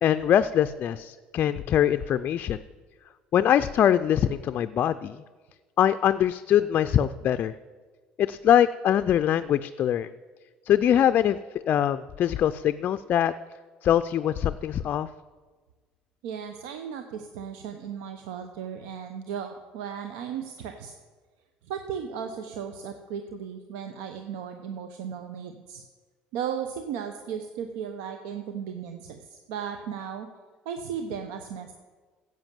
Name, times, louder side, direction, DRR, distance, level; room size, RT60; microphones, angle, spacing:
voice 1, 0.0-2.6 3.3-5.2 5.8-7.5 8.2-10.1 10.7-11.4 11.7-13.3 13.8-15.1, left 10 dB, 50° left, 10 dB, 0.4 m, -23 dB
voice 2, 16.2-20.9 21.6-25.8 26.3-30.3 30.6-31.7, right 7 dB, 85° right, 7 dB, 0.7 m, -36 dB
10.5 x 7.8 x 7.4 m, 1.4 s
supercardioid pair, 90°, 4 cm